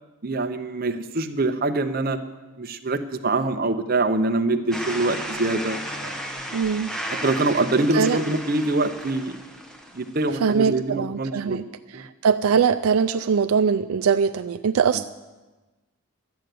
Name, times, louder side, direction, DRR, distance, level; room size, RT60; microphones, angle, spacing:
voice 1, 0.2-2.2 2.6-6.1 7.1-9.4 9.9-11.6 11.9-12.0, right 2 dB, 40° right, 7 dB, 0.7 m, -24 dB
sound 1, 4.7-10.5, equal, 5° left, 0.9 m, -34 dB
voice 2, 6.5-6.9 7.9-8.2 10.4-11.6 11.9-15.1, right 6 dB, 75° right, 9 dB, 0.4 m, -22 dB
11.5 x 7.9 x 9.1 m, 1.2 s
head